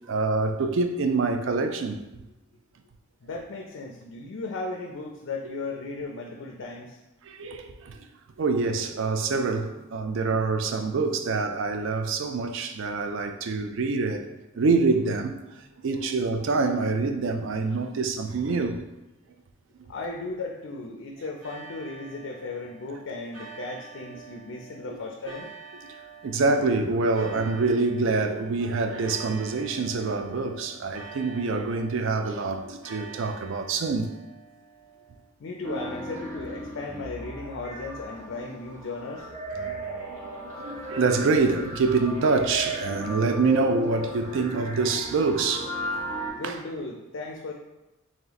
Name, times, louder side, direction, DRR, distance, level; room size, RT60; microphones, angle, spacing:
voice 1, 0.1-2.0 7.2-8.1 8.4-14.3 14.6-15.4 15.8-18.8 24.9-25.0 26.2-34.1 40.4-46.0 46.4-46.6, right 4 dB, 60° right, 0.3 m, -26 dB
voice 2, 3.2-7.0 19.9-25.5 35.4-39.3 46.4-47.5, left 3 dB, 65° left, 0.4 m, -36 dB
sound 1, 21.4-35.3, right 5 dB, 80° right, 1.1 m, -47 dB
sound 2, 35.6-46.3, equal, 35° right, 1.5 m, -35 dB
3.2 x 2.9 x 3.9 m
head